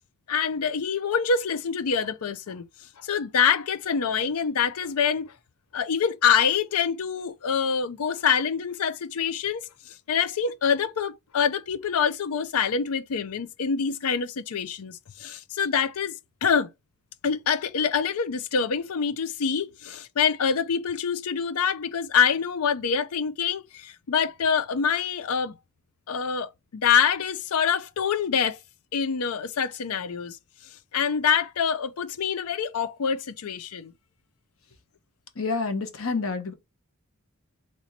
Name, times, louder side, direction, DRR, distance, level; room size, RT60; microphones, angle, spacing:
voice 1, 0.3-2.6 3.0-5.3 5.7-16.7 17.2-25.5 26.1-28.6 28.9-30.4 30.9-33.9, left 6 dB, 90° left, 0.5 m, -25 dB
voice 2, 35.3-36.5, left 4 dB, 70° left, 1.1 m, -28 dB
4.3 x 3.0 x 2.7 m
head